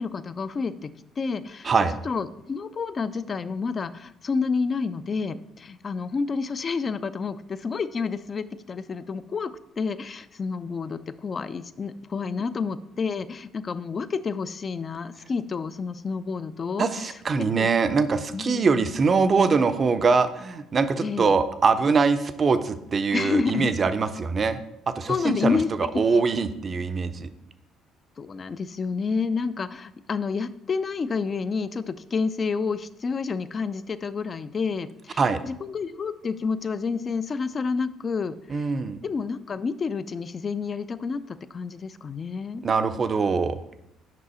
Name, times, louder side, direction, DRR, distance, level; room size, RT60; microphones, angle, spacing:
voice 1, 0.0-1.7 2.0-17.2 17.6-17.7 18.3-18.9 21.0-21.3 23.1-23.7 25.1-26.2 28.2-38.7 39.0-42.6, left 5 dB, 40° left, 13 dB, 0.4 m, -29 dB
voice 2, 16.8-24.6 24.9-25.6 26.0-27.3 35.2-35.4 38.5-39.0 42.6-43.6, right 4 dB, 40° right, 11 dB, 0.5 m, -23 dB
6.1 x 5.4 x 4.3 m, 0.82 s
figure-of-eight pair, 50°, 0 cm